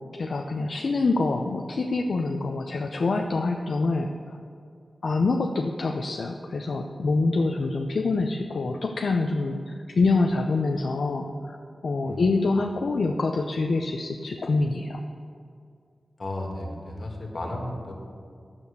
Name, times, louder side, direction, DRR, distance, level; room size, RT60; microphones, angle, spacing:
voice 1, 0.1-4.4 5.0-11.6 11.8-15.0, left 3 dB, 70° left, 3 dB, 0.6 m, -26 dB
voice 2, 12.0-12.4 16.2-17.9, left 1 dB, 55° left, 1 dB, 2.1 m, -34 dB
10.5 x 7.1 x 6.7 m, 2.3 s
wide cardioid pair, 80°, 0 cm